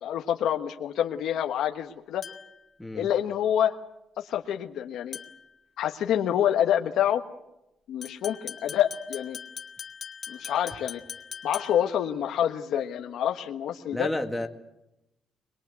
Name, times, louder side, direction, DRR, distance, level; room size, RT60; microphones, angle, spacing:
voice 1, 0.0-2.2 2.9-3.7 4.2-5.2 5.8-7.2 7.9-9.4 10.3-11.0 11.4-14.1, left 10 dB, 75° left, 4 dB, 1.4 m, -27 dB
sound 1, 2.2-2.7 5.1-5.5 8.0-12.0, left 6 dB, 35° left, 1.7 m, -41 dB
voice 2, 13.9-14.5, left 1 dB, 5° left, 4 dB, 2.0 m, -30 dB
22.5 x 22.0 x 8.3 m, 0.89 s
cardioid pair, 160°, 0 cm